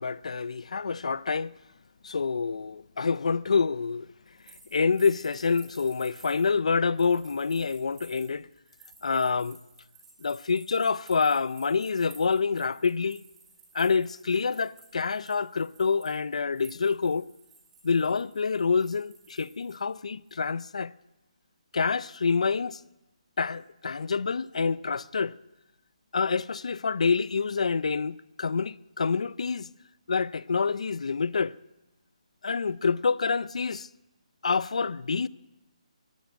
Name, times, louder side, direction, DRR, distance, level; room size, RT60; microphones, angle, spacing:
voice 1, 0.0-1.5 2.0-4.1 4.7-8.5 9.0-9.6 10.2-13.2 13.7-17.3 17.8-20.9 21.7-22.8 23.4-25.3 26.1-29.7 30.1-31.5 32.4-33.9 34.4-35.3, left 5 dB, 65° left, 0.5 m, -27 dB
sound 1, 4.3-19.9 20.3-20.4, right 4 dB, 10° right, 6.8 m, -55 dB
14.0 x 11.0 x 9.1 m
hypercardioid pair, 170°, 4 cm